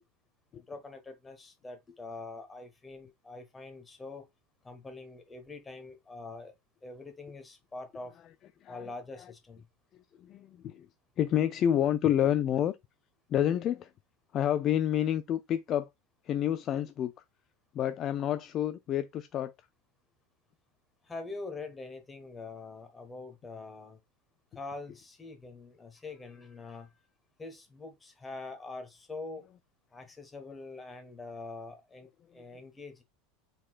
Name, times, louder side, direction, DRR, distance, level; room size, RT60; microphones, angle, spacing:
voice 1, 0.5-4.2 4.6-6.5 6.8-8.2 8.7-9.7 21.0-24.0 24.5-26.9 27.4-29.5 29.9-33.0, left 3 dB, 15° left, 1.3 m, -44 dB
voice 2, 8.7-9.3 10.2-10.9 11.2-12.8 13.3-13.9 14.3-15.9 16.2-17.1 17.7-19.5 24.9-25.0 29.5-29.6, left 10 dB, 40° left, 0.3 m, -29 dB
4.3 x 3.9 x 2.3 m
hypercardioid pair, 85°, 0 cm